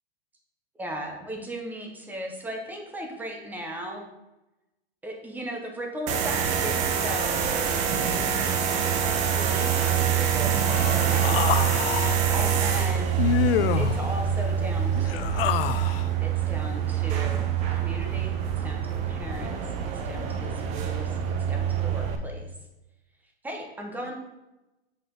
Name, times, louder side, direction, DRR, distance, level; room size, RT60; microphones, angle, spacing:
voice 1, 0.8-4.1 5.0-7.7 8.4-8.5 8.8-10.8 11.1-11.4 12.3-13.2 13.8-15.9 16.2-19.6 20.0-21.2 21.5-22.5 23.4-24.1, equal, 5° right, 2 dB, 0.9 m, -37 dB
sound 1, 6.1-22.2, right 8 dB, 20° right, 0.5 m, -25 dB
Human voice, 10.7-12.2 13.2-14.0 14.9-16.1, left 12 dB, 65° left, 0.4 m, -27 dB
8.0 x 4.9 x 3.9 m, 0.99 s
hypercardioid pair, 150°, 32 cm